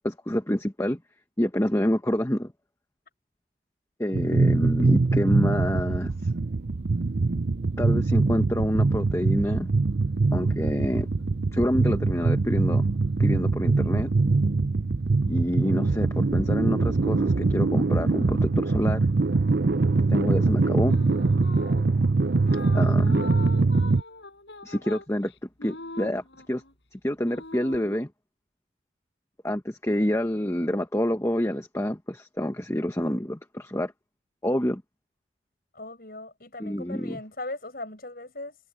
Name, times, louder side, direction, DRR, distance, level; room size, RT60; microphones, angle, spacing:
voice 1, 0.0-1.0 1.4-2.5 4.0-6.1 7.8-9.7 10.3-11.1 11.5-12.8 13.2-14.1 15.3-19.0 20.1-21.0 22.7-23.2 24.6-25.3 25.6-26.6 26.9-28.1 29.4-33.9 34.4-34.8 36.6-37.2, equal, 15° left, 1.1 m, -27 dB
sound 1, 4.1-24.0, right 3 dB, 60° right, 0.6 m, -23 dB
voice 2, 20.1-20.4 35.7-38.6, left 2 dB, 55° left, 8.0 m, -39 dB
sound 2, 20.8-21.9 22.5-26.7 27.2-28.0, left 2 dB, 75° left, 7.3 m, -42 dB
head